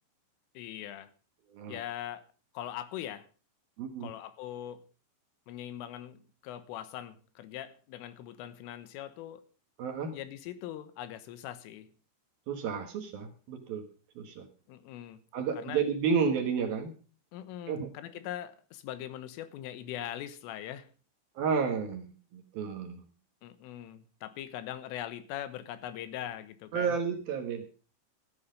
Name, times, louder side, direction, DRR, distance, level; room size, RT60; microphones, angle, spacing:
voice 1, 0.6-1.1 1.7-2.3 2.6-3.3 4.0-4.9 5.5-9.4 10.1-11.9 14.7-15.2 15.6-15.8 17.3-20.9 23.4-27.0, left 11 dB, 90° left, 3.7 m, -41 dB
voice 2, 1.5-1.8 3.8-4.1 9.8-10.1 12.5-13.9 14.2-14.5 15.3-16.9 17.7-17.9 21.4-23.0 26.7-27.7, right 6 dB, 65° right, 2.6 m, -31 dB
15.5 x 11.5 x 5.1 m
omnidirectional pair, 5.7 m